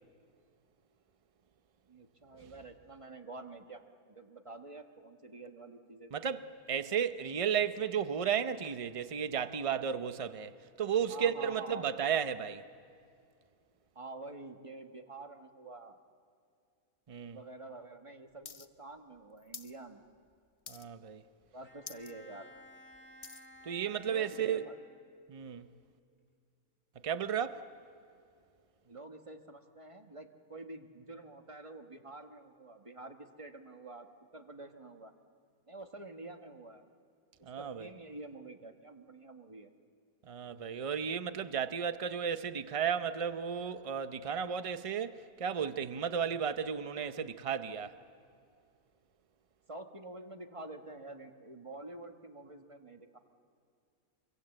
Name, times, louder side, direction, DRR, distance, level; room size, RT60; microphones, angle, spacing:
voice 1, 1.9-6.3 11.1-11.9 13.9-16.0 17.3-20.1 21.5-22.5 24.0-24.8 28.8-34.1 34.3-35.1 35.7-36.9 37.4-39.7 49.7-53.2, right 2 dB, 25° right, 1.1 m, -48 dB
voice 2, 6.1-12.6 17.1-17.4 20.7-21.2 23.6-24.6 25.3-25.7 27.0-27.6 37.4-37.9 40.3-45.1 45.4-47.9, right 7 dB, 40° right, 0.5 m, -34 dB
sound 1, 18.5-18.7 18.9-19.8 20.1-20.3 20.7-21.1 21.5-21.6 21.8-22.1 22.6-23.5 24.2-24.3, left 5 dB, 45° left, 0.4 m, -48 dB
Bowed string instrument, 21.6-25.3, left 1 dB, 5° left, 1.9 m, -56 dB
25.0 x 24.0 x 7.8 m
omnidirectional pair, 1.6 m